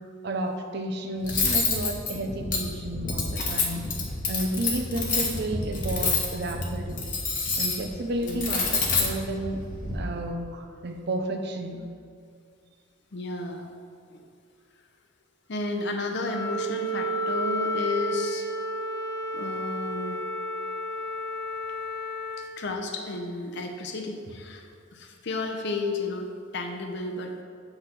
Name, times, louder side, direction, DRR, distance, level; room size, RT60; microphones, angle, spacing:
voice 1, 0.0-3.9 4.3-7.1 7.6-9.6 9.9-11.8, right 1 dB, 55° right, 5 dB, 0.6 m, -32 dB
Cutlery silverware, 1.2-10.0, left 4 dB, 40° left, 1.0 m, -28 dB
voice 2, 13.1-13.7 14.1-14.2 15.5-18.5 19.3-20.2 22.4-27.4, left 2 dB, 55° left, 3 dB, 0.6 m, -32 dB
Wind instrument woodwind instrument, 16.2-22.5, equal, 15° left, 0.5 m, -31 dB
8.0 x 3.3 x 5.8 m, 2.2 s
head